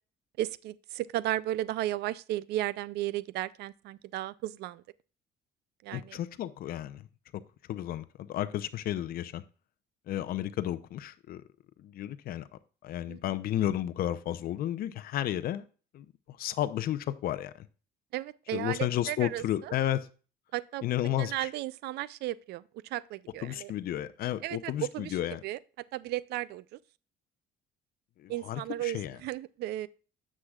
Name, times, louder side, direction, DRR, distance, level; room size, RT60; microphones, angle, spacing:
voice 1, 0.4-4.8 5.8-6.2 13.1-13.2 18.1-19.7 20.5-20.9 21.2-23.7 24.4-25.1 25.4-25.6 25.9-26.8 28.3-29.9, right 15 dB, 75° right, 0.4 m, -34 dB
voice 2, 5.9-7.1 7.3-7.4 7.7-9.4 10.1-11.4 11.8-12.5 12.8-15.6 15.9-17.7 18.5-20.1 20.8-21.5 23.4-25.4 28.2-29.2, left 12 dB, 60° left, 0.6 m, -32 dB
9.7 x 7.6 x 2.3 m
cardioid pair, 110°, 17 cm